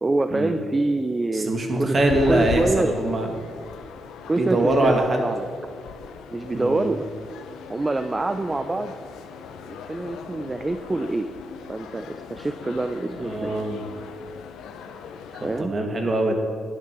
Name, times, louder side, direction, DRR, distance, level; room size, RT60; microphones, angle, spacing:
voice 1, 0.0-1.5 1.8-2.0 2.3-2.9 4.3-5.5 6.3-7.1 7.7-8.9 9.7-11.3 11.7-13.5 15.3-15.7, right 2 dB, 25° right, 9 dB, 0.6 m, -26 dB
voice 2, 1.3-3.3 4.4-5.2 6.5-6.9 13.2-13.9 15.6-16.3, right 2 dB, 40° right, 3 dB, 2.1 m, -23 dB
sound 1, 1.9-15.6, left 6 dB, 85° left, 0.8 m, -38 dB
10.5 x 9.5 x 6.1 m, 2.2 s
cardioid pair, 80°, 0 cm